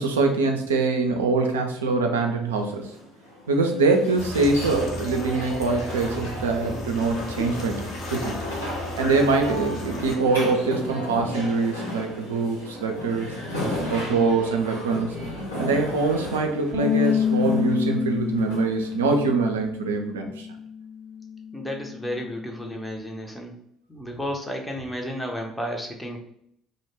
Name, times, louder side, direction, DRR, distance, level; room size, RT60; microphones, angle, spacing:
voice 1, 0.0-3.0 3.5-8.4 9.0-13.3 13.9-15.1 15.6-20.5, right 3 dB, 75° right, 3 dB, 0.3 m, -24 dB
sound 1, 2.6-19.6, left 1 dB, 85° left, 0.7 m, -35 dB
sound 2, 4.2-10.2, left 1 dB, 50° left, 0.6 m, -35 dB
Bass guitar, 16.7-23.0, left 7 dB, 35° right, 0.7 m, -28 dB
voice 2, 21.5-23.5 23.9-26.2, equal, 10° left, 1 dB, 0.5 m, -32 dB
2.1 x 2.1 x 3.1 m, 0.70 s
figure-of-eight pair, 55°, 0 cm